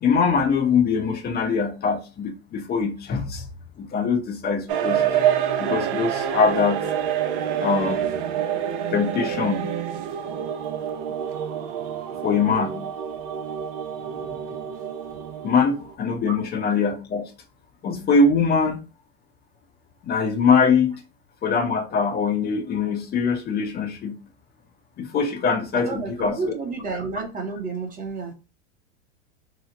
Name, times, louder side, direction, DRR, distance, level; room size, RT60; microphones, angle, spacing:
voice 1, 0.0-3.4 3.8-5.0 5.6-6.8 7.6-8.1 8.9-9.7 12.2-12.8 14.3-14.4 15.4-17.3 17.8-18.8 20.0-21.0 21.4-24.1 25.0-26.4, left 5 dB, 30° left, 0.7 m, -22 dB
sound 1, 4.7-15.9, right 9 dB, 55° right, 0.6 m, -27 dB
voice 2, 25.7-28.3, right 4 dB, 25° right, 1.0 m, -30 dB
2.9 x 2.1 x 3.8 m
hypercardioid pair, 105°, 33 cm